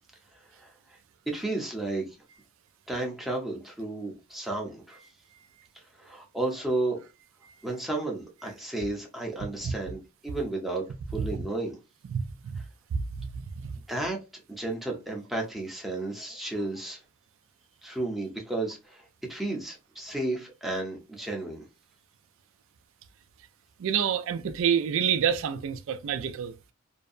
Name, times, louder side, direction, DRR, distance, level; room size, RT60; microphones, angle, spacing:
voice 1, 0.5-1.0 1.3-2.1 2.9-5.0 5.7-7.0 7.6-10.8 11.1-11.8 13.9-14.2 14.5-17.0 17.8-21.7, right 2 dB, ahead, 0.6 m, -33 dB
voice 2, 12.1-12.6 13.1-13.3 13.6-13.8 23.8-26.5, right 8 dB, 65° right, 0.3 m, -28 dB
2.6 x 2.1 x 2.4 m
head